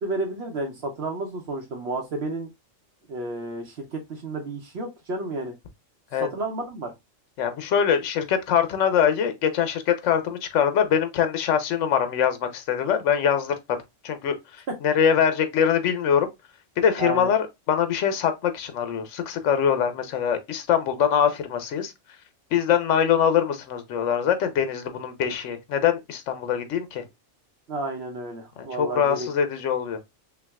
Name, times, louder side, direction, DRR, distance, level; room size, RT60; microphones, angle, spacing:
voice 1, 0.0-2.5 3.1-5.5 6.2-6.9 14.7-14.8 17.0-17.3 27.7-29.3, right 2 dB, 60° right, 0.9 m, -31 dB
voice 2, 7.4-13.5 14.0-16.3 16.8-21.9 22.5-27.1 28.6-30.0, left 8 dB, 75° left, 1.0 m, -23 dB
5.6 x 2.3 x 2.2 m
omnidirectional pair, 1.3 m